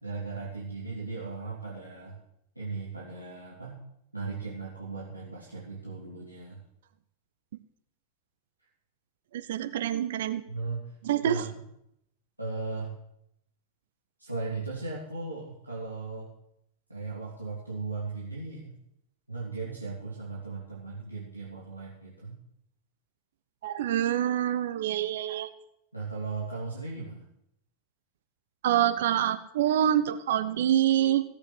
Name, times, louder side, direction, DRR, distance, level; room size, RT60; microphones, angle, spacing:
voice 1, 0.0-2.2 2.5-3.8 4.1-6.6 10.5-10.9 11.2-11.5 12.4-12.9 14.2-16.3 16.9-18.8 19.3-22.3 25.9-27.2, right 3 dB, 85° right, -6 dB, 3.1 m, -37 dB
voice 2, 9.3-10.4 11.0-11.5 23.6-25.5 28.6-31.2, right 11 dB, 55° right, 11 dB, 0.9 m, -26 dB
17.0 x 8.2 x 7.7 m, 0.78 s
figure-of-eight pair, 90°, 0 cm